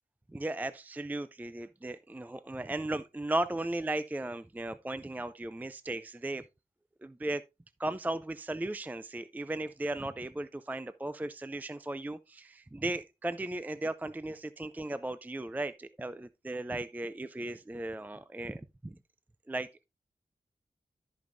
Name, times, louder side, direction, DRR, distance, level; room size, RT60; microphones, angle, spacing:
voice 1, 0.3-6.4 7.0-7.4 7.8-19.0 19.5-19.9, right 2 dB, 10° right, 0.4 m, -36 dB
14.0 x 5.2 x 2.6 m
wide cardioid pair, 65°, 14 cm